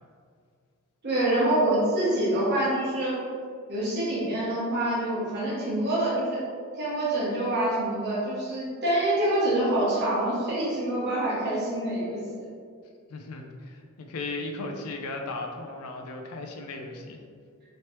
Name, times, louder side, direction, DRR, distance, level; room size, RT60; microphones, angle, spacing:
voice 1, 1.0-3.2 3.7-6.4 6.8-12.5, right 1 dB, 50° right, -8 dB, 1.2 m, -26 dB
voice 2, 13.1-17.2, left 2 dB, 90° left, 3 dB, 0.5 m, -36 dB
3.2 x 3.0 x 2.9 m, 2.1 s
head